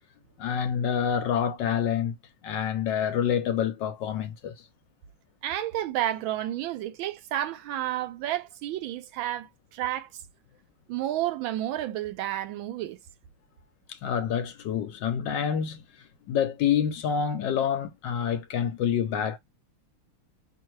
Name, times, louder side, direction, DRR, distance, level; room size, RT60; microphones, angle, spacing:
voice 1, 0.4-2.1 2.4-4.7 13.9-19.4, left 8 dB, 70° left, 1.1 m, -27 dB
voice 2, 5.4-10.2 10.9-13.0, right 13 dB, 75° right, 1.3 m, -31 dB
5.7 x 2.7 x 3.1 m
omnidirectional pair, 2.4 m